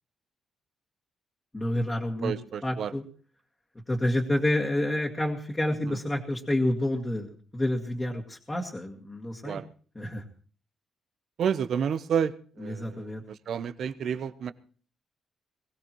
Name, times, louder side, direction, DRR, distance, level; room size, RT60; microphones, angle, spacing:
voice 1, 1.5-2.3 2.6-3.0 3.9-9.6 10.0-10.2 12.6-13.2, left 1 dB, 20° left, -3 dB, 2.1 m, -29 dB
voice 2, 2.2-2.9 5.8-6.0 9.4-9.7 11.4-12.3 12.6-14.5, right 7 dB, 70° right, 13 dB, 0.8 m, -30 dB
22.0 x 16.0 x 3.1 m, 0.42 s
cardioid pair, 90°, 0 cm